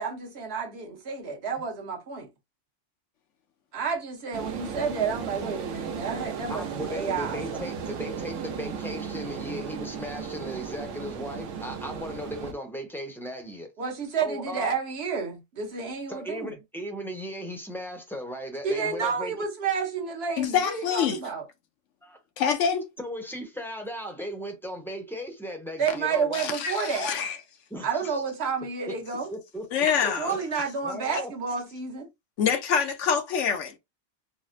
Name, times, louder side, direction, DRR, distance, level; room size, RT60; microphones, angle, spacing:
voice 1, 0.0-2.3 3.7-7.6 13.8-16.5 18.6-21.4 25.8-27.1 27.8-29.3 30.2-32.1, right 5 dB, 60° right, 1.0 m, -30 dB
sound 1, 4.3-12.5, right 7 dB, 80° right, 1.0 m, -35 dB
voice 2, 6.5-13.7 14.2-14.7 16.1-19.4 22.0-22.2 23.0-26.5 27.7-28.2 28.9-29.0 29.3-29.7 30.0-30.4 30.8-31.3, equal, 5° left, 0.5 m, -37 dB
voice 3, 20.4-21.2 22.4-22.9 26.3-27.4 29.7-30.4 32.4-33.8, left 7 dB, 80° left, 1.0 m, -25 dB
4.0 x 2.0 x 2.5 m
omnidirectional pair, 1.3 m